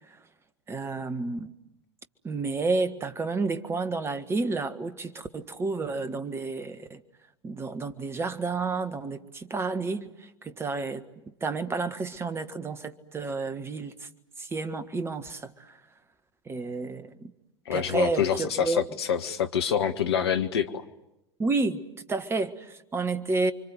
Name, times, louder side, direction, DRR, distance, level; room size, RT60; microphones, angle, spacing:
voice 1, 0.7-1.5 2.2-7.0 7.4-11.0 11.4-14.1 14.4-15.8 16.4-17.3 17.7-18.8 21.4-21.8 22.1-23.5, right 3 dB, 15° right, 1.6 m, -30 dB
voice 2, 17.6-20.8, left 8 dB, 65° left, 1.7 m, -26 dB
29.5 x 25.0 x 7.9 m
figure-of-eight pair, 85°, 15 cm